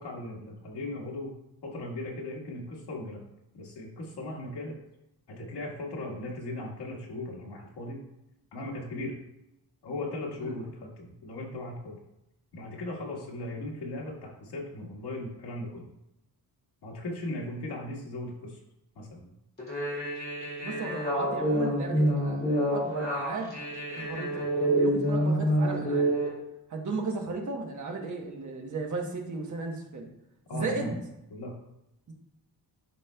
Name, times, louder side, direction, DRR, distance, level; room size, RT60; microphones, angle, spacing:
voice 1, 0.0-1.3 1.6-3.2 3.5-4.7 5.3-8.0 8.5-9.1 9.8-12.0 12.5-15.9 16.8-18.6 18.9-19.3 30.5-31.0 31.3-31.5, left 2 dB, 80° left, -3 dB, 1.7 m, -38 dB
sound 1, 19.6-26.3, right 1 dB, 25° left, 2.2 m, -27 dB
voice 2, 20.6-23.5 23.9-26.1 26.7-30.1 30.5-31.0 32.1-32.2, right 3 dB, 50° right, 1 dB, 1.1 m, -35 dB
11.0 x 4.2 x 2.2 m, 0.85 s
wide cardioid pair, 180°, 39 cm